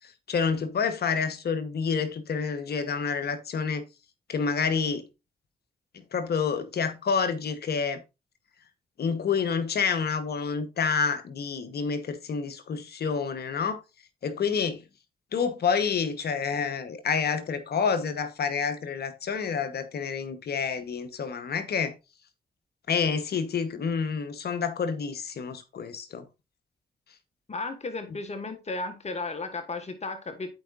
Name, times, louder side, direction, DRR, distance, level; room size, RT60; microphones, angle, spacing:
voice 1, 0.3-3.8 4.3-5.1 6.1-8.0 9.0-13.8 14.2-14.8 15.3-21.9 22.9-26.2, left 6 dB, 65° left, 1.0 m, -28 dB
voice 2, 27.5-30.5, left 3 dB, 40° left, 1.5 m, -34 dB
12.0 x 4.7 x 2.5 m
supercardioid pair, 40°, 18 cm